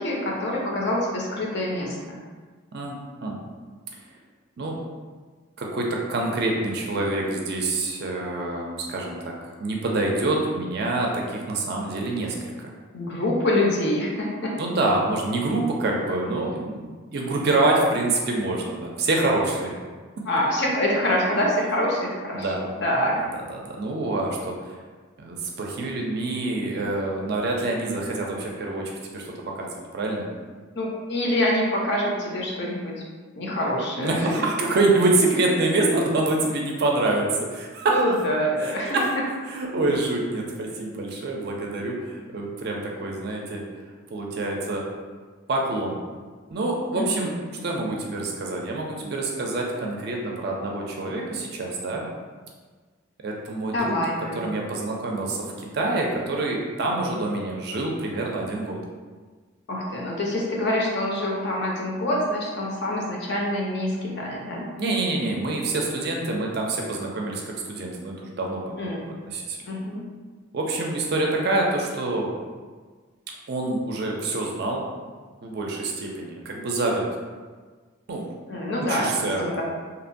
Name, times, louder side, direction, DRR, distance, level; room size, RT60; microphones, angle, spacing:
voice 1, 0.0-2.2 12.9-14.5 20.3-22.5 22.8-23.2 30.7-33.0 33.4-34.2 37.9-39.0 46.9-47.3 53.7-54.4 59.7-64.7 68.8-69.0 69.7-70.0 78.5-79.6, left 1 dB, 55° left, -2 dB, 0.5 m, -25 dB
voice 2, 2.7-3.4 4.6-4.8 5.6-9.3 9.6-12.7 14.6-19.8 22.3-22.6 23.2-24.8 25.2-30.3 34.0-38.1 38.6-39.1 39.5-43.6 44.1-44.8 45.5-46.0 46.5-47.3 47.6-52.1 53.2-54.0 54.3-58.8 64.8-68.8 69.2-69.6 70.5-72.3 73.5-74.8 75.4-77.1 78.1-78.3 78.8-79.5, right 2 dB, 50° right, -1 dB, 0.4 m, -26 dB
2.9 x 2.1 x 2.5 m, 1.4 s
head